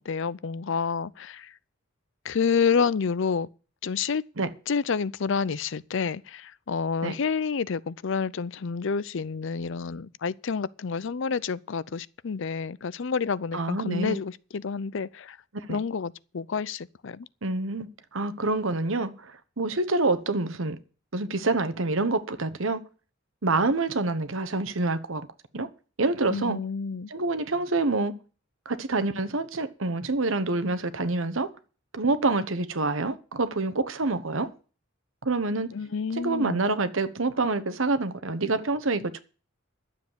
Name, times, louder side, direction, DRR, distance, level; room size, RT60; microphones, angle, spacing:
voice 1, 0.0-1.5 2.2-3.5 3.8-4.2 4.7-15.4 15.7-17.3 26.3-27.1 35.7-36.7, left 5 dB, 65° left, 0.5 m, -29 dB
voice 2, 13.5-14.2 15.7-15.8 17.4-19.3 19.6-20.8 21.1-22.8 23.4-25.3 25.5-25.7 26.0-26.6 27.1-28.2 28.6-31.5 31.9-34.5 35.2-35.7 36.1-39.2, right 3 dB, 75° right, 1.2 m, -27 dB
11.5 x 7.5 x 8.0 m
head